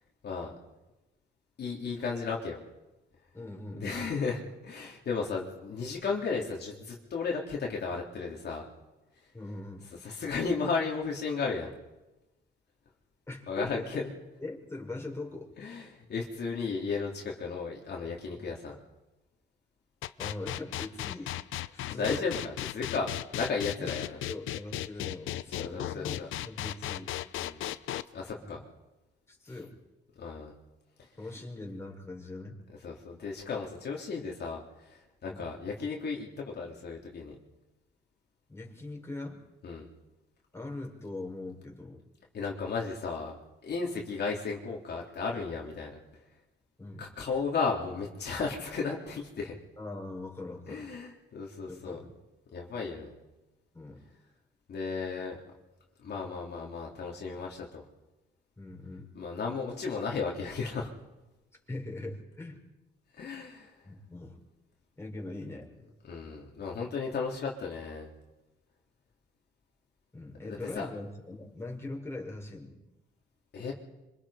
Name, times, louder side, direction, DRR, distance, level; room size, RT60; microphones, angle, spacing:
voice 1, 1.6-2.6 3.7-8.7 10.0-11.7 13.5-14.1 15.6-18.7 21.9-24.2 25.5-26.3 27.4-27.6 28.1-28.6 30.2-30.5 32.8-37.4 39.6-39.9 42.3-43.4 43.6-46.0 47.0-49.6 50.7-52.0 52.5-53.1 54.7-55.4 56.0-57.8 59.2-60.9 63.2-63.8 66.0-68.1 70.4-70.9 73.5-73.7, left 4 dB, 55° left, -2 dB, 3.5 m, -34 dB
voice 2, 3.3-4.0 9.3-9.9 13.3-13.9 14.4-15.5 18.4-18.5 20.2-21.4 21.7-22.2 23.8-24.0 24.3-26.2 26.4-27.1 28.4-28.6 29.3-29.7 31.2-32.6 35.3-35.5 38.5-39.4 40.5-42.0 46.8-47.1 49.8-50.9 51.6-52.1 53.7-54.0 58.6-59.1 61.7-62.6 63.8-64.4 65.0-65.7 70.1-72.8, left 2 dB, 15° left, 0 dB, 5.6 m, -41 dB
sound 1, 20.0-28.0, left 14 dB, 85° left, 0.8 m, -35 dB
26.5 x 25.5 x 5.1 m, 1.1 s
cardioid pair, 90°, 20 cm